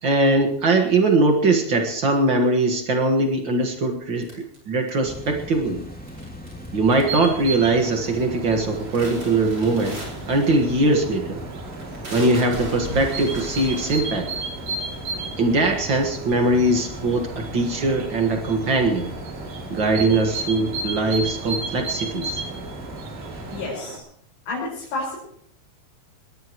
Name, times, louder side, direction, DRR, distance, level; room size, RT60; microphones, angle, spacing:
voice 1, 0.0-4.3 4.7-5.8 6.7-10.0 10.3-11.4 12.1-14.3 15.4-19.1 19.7-22.4, right 2 dB, 60° right, 4 dB, 1.2 m, -21 dB
sound 1, 4.2-5.3 6.1-6.7 6.9-7.4 7.8-8.2 8.5-15.6 16.2-16.3 16.6-18.2, right 1 dB, 25° right, 6.2 m, -38 dB
sound 2, 5.0-23.7, equal, 5° left, 1.3 m, -38 dB
sound 3, 6.9-24.0, right 3 dB, 80° right, 5.0 m, -35 dB
voice 2, 23.5-24.0 24.5-25.2, left 2 dB, 75° left, -5 dB, 7.2 m, -30 dB
20.5 x 20.0 x 3.1 m, 0.66 s
omnidirectional pair, 4.8 m